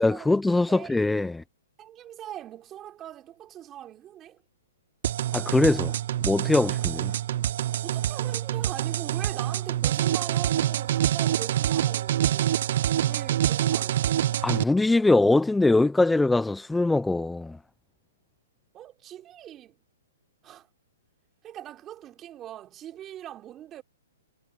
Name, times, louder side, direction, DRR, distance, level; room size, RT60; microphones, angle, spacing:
voice 1, 0.0-1.4 5.3-5.9 6.2-7.1 14.4-17.6, left 2 dB, 5° left, 0.6 m, -22 dB
voice 2, 0.7-1.1 1.8-4.4 7.8-12.7 13.0-14.2 18.7-19.8 20.4-20.7 21.4-23.8, right 12 dB, 20° right, 4.1 m, -42 dB
sound 1, 5.0-14.6, right 11 dB, 55° right, 0.5 m, -26 dB
hypercardioid pair, 150°, 0 cm